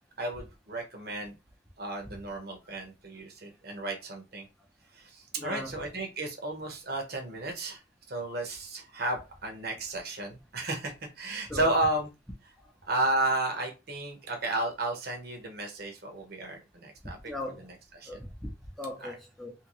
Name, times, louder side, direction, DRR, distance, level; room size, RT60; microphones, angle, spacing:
voice 1, 0.2-1.3 1.8-4.5 5.0-7.8 8.1-12.1 12.9-17.3 17.6-18.2 19.0-19.1, right 2 dB, 55° right, 1.1 m, -33 dB
voice 2, 5.4-5.8 11.5-11.7 17.2-17.7 18.1-18.5 18.8-19.5, left 1 dB, ahead, 0.7 m, -38 dB
3.0 x 2.8 x 3.0 m
head